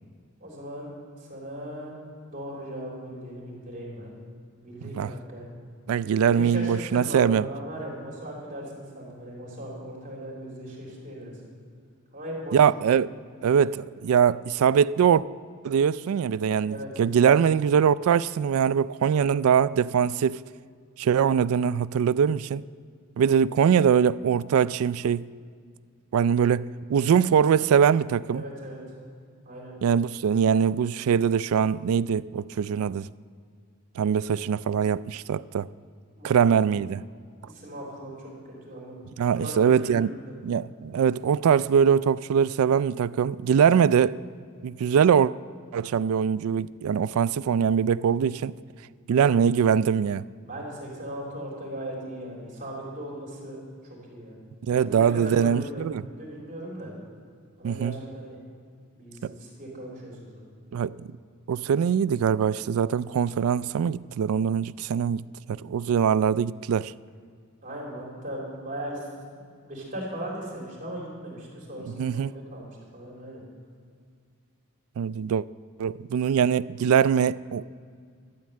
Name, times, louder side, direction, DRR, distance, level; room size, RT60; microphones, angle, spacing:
voice 1, 0.4-0.9 1.2-1.9 2.3-4.1 4.6-5.5 6.3-11.3 12.1-12.7 16.7-16.9 28.3-28.9 29.5-29.8 36.2-36.5 37.4-39.0 39.4-40.3 50.4-53.6 53.9-54.4 54.7-56.9 57.6-58.4 59.0-60.4 67.6-69.1 69.3-73.4, right 1 dB, 35° right, 3.6 m, -38 dB
voice 2, 5.9-7.5 12.5-13.1 13.4-15.2 15.6-20.4 21.0-22.6 23.2-25.3 26.1-28.4 29.8-33.1 34.0-35.7 36.2-37.0 39.2-40.1 40.4-44.2 44.6-45.3 45.7-48.5 49.1-50.3 54.7-56.0 57.6-57.9 59.2-59.3 60.7-60.9 61.5-65.2 65.5-66.9 71.9-72.3 75.0-75.4 75.8-77.7, right 7 dB, 75° right, 0.3 m, -22 dB
12.5 x 7.5 x 8.7 m
head